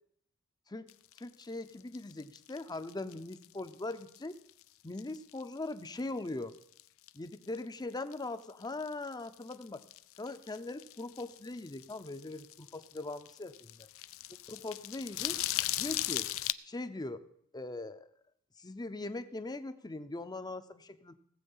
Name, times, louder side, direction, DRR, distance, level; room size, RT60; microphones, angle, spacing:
sound 1, 0.9-4.6 5.0-5.6 5.8-6.0 6.3-8.2 8.5-16.5, left 15 dB, 65° left, 0.4 m, -38 dB
voice 1, 1.2-4.4 4.8-6.5 7.1-9.8 10.2-13.8 14.5-15.4 15.8-16.3 16.7-17.3 17.5-18.1 18.6-21.1, left 2 dB, 20° left, 11 dB, 0.6 m, -40 dB
18.0 x 7.7 x 5.5 m, 0.69 s
head